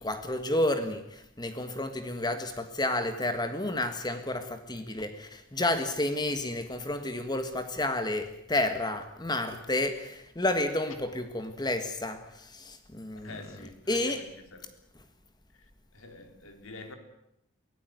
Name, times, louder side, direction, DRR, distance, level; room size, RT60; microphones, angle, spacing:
voice 1, 0.0-13.3 13.9-14.3, left 1 dB, 20° left, 1.6 m, -31 dB
voice 2, 13.2-14.7 15.5-17.0, left 3 dB, 80° left, 3.6 m, -47 dB
24.0 x 16.5 x 9.3 m
head